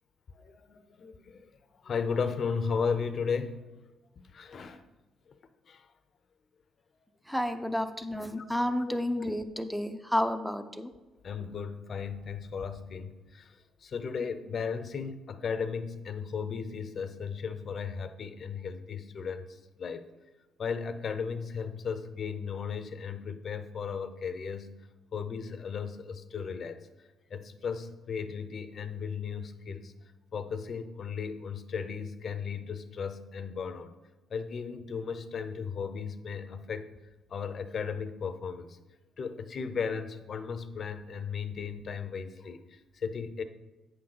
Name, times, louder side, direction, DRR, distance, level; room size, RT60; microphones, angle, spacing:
voice 1, 0.3-1.5 1.8-3.6 4.3-4.8 5.7-5.9 8.3-8.4 8.8-9.2 11.2-13.5 13.8-19.5 19.8-20.0 20.6-24.8 25.1-26.8 27.3-29.9 30.3-33.9 34.3-36.9 37.3-38.8 39.2-43.4, left 6 dB, 50° left, 10 dB, 0.6 m, -35 dB
voice 2, 7.3-10.9, left 1 dB, ahead, 9 dB, 0.6 m, -31 dB
8.3 x 3.8 x 6.0 m, 1.1 s
cardioid pair, 90°, 0 cm